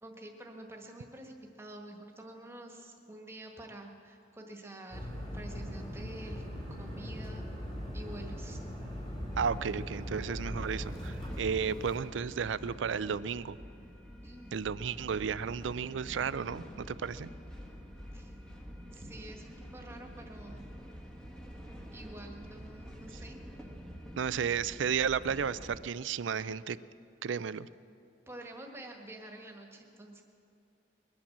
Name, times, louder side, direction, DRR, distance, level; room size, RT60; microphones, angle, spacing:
voice 1, 0.0-7.5 7.9-8.6 14.2-14.5 18.1-18.4 18.9-20.7 21.9-23.4 28.3-30.2, right 1 dB, 15° right, 2 dB, 1.6 m, -48 dB
sound 1, 4.9-12.0, equal, 25° left, 2.9 m, -40 dB
sound 2, 9.3-25.8, equal, 5° left, 1.2 m, -47 dB
voice 2, 9.4-13.6 14.5-17.3 24.2-26.8 27.2-27.7, right 6 dB, 75° right, 16 dB, 0.4 m, -33 dB
21.5 x 8.8 x 7.3 m, 2.7 s
head